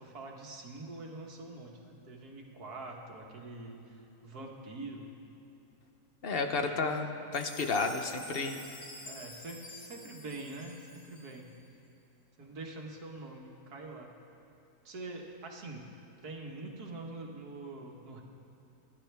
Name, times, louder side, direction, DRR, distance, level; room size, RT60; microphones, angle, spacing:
voice 1, 0.0-5.1 6.6-6.8 9.0-11.5 12.4-14.1 14.9-15.8 16.2-18.2, right 2 dB, 85° right, 0 dB, 2.0 m, -45 dB
voice 2, 6.2-8.6, left 3 dB, 45° left, 5 dB, 1.0 m, -32 dB
Chime, 7.3-11.6, left 1 dB, 80° left, 3.3 m, -49 dB
26.0 x 11.5 x 3.4 m, 2.8 s
omnidirectional pair, 1.6 m